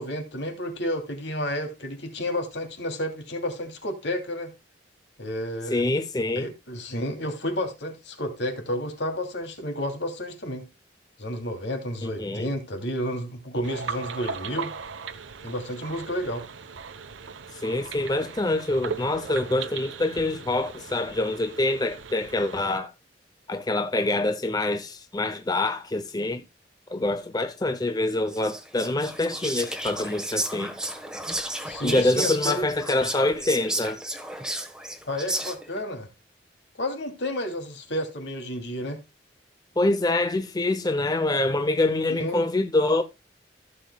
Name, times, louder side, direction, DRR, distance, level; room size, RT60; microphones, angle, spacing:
voice 1, 0.0-4.5 5.2-5.8 6.4-10.7 11.2-14.7 15.4-16.5 31.7-32.6 35.0-36.1 36.8-39.0 42.2-42.4, equal, 70° left, 2.7 m, -31 dB
voice 2, 5.7-6.5 12.0-12.5 17.5-22.9 23.5-26.4 26.9-30.7 31.8-34.0 39.8-43.0, left 2 dB, 20° left, 0.6 m, -25 dB
sound 1, 13.6-22.8, right 5 dB, 90° right, 0.8 m, -38 dB
Whispering, 28.3-35.8, right 1 dB, 5° right, 1.1 m, -32 dB
15.5 x 7.4 x 2.2 m
head